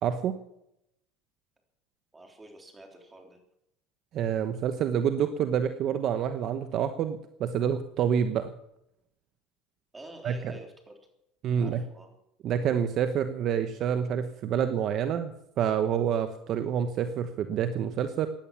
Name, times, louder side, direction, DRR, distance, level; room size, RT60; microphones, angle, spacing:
voice 1, 0.0-0.4 4.1-8.5 10.2-10.5 11.4-11.8 12.4-18.3, right 8 dB, 50° right, 9 dB, 1.0 m, -28 dB
voice 2, 2.1-3.4 9.9-11.0 11.6-12.1, right 2 dB, 15° right, 3 dB, 3.6 m, -48 dB
16.5 x 10.5 x 7.1 m, 0.81 s
supercardioid pair, 130°, 0 cm